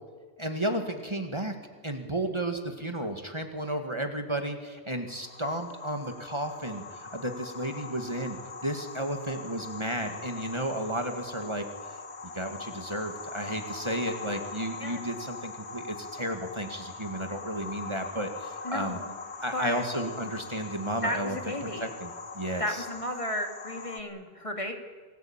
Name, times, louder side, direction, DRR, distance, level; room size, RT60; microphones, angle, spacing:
voice 1, 0.4-1.5 1.8-8.4 8.6-12.0 12.3-19.0 19.4-22.9, right 1 dB, 25° right, 5 dB, 2.1 m, -33 dB
sound 1, 5.1-24.0, left 4 dB, 80° left, 1.8 m, -42 dB
voice 2, 18.6-19.2 19.5-19.8 21.0-21.9 22.6-24.7, left 1 dB, 30° left, 4 dB, 2.5 m, -33 dB
27.0 x 18.5 x 9.0 m, 1.5 s
omnidirectional pair, 1.1 m